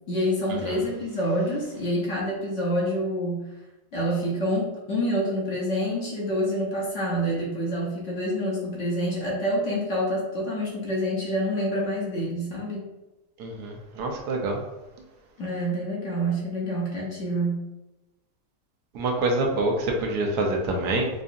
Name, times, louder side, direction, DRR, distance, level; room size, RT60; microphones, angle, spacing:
voice 1, 0.1-3.4 3.9-12.8 15.4-17.6, equal, 55° left, -5 dB, 1.0 m, -27 dB
voice 2, 13.4-14.6 18.9-21.1, right 2 dB, 75° right, 1 dB, 1.2 m, -26 dB
4.7 x 2.5 x 2.5 m, 1.0 s
omnidirectional pair, 1.8 m